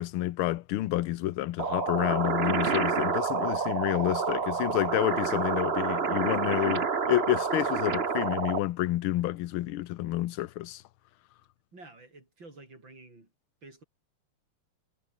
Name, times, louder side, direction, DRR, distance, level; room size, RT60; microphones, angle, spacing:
voice 1, 0.0-10.8, left 15 dB, 75° left, 1.6 m, -29 dB
sound 1, 1.6-8.6, right 5 dB, 30° right, 1.4 m, -28 dB
voice 2, 11.7-13.3 13.6-13.8, right 2 dB, 60° right, 8.0 m, -50 dB
omnidirectional pair, 2.4 m